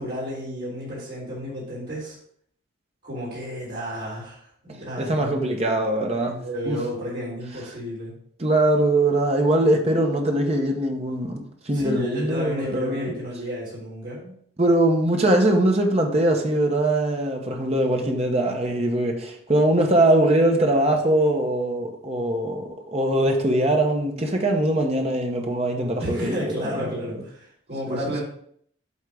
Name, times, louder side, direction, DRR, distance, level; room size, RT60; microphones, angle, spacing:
voice 1, 0.0-2.2 3.0-5.3 6.2-8.1 11.7-14.2 26.0-28.2, equal, 50° right, 3.4 m, -32 dB
voice 2, 5.0-6.8 8.4-13.1 14.6-26.9 27.9-28.2, right 1 dB, 30° right, 1.0 m, -22 dB
8.3 x 3.7 x 5.0 m
head